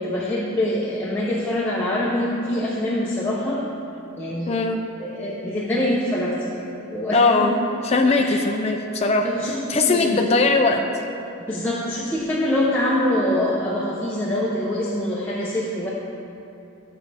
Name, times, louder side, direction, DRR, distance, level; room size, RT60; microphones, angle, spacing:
voice 1, 0.0-3.6 4.2-4.6 5.0-7.5 8.2-8.4 9.2-10.3 11.5-15.9, left 1 dB, 10° left, -7 dB, 0.9 m, -24 dB
voice 2, 4.5-4.8 7.1-7.5 7.8-9.3 9.7-10.8, left 3 dB, 30° left, 2 dB, 0.5 m, -19 dB
13.0 x 6.7 x 3.5 m, 2.7 s
head